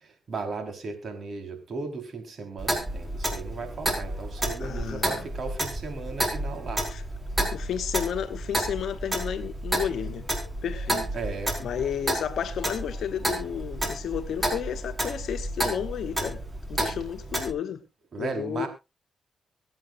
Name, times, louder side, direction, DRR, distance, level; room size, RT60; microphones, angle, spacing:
voice 1, 0.0-6.8 11.1-11.5 18.1-18.7, right 4 dB, 60° right, 4.3 m, -36 dB
Clock, 2.6-17.5, right 1 dB, 25° right, 4.9 m, -31 dB
voice 2, 4.6-5.3 6.9-7.0 7.5-10.3 10.6-11.1 11.6-16.4 16.7-17.8 18.2-18.7, left 9 dB, 75° left, 1.0 m, -32 dB
24.5 x 8.9 x 2.6 m
supercardioid pair, 50°, 0 cm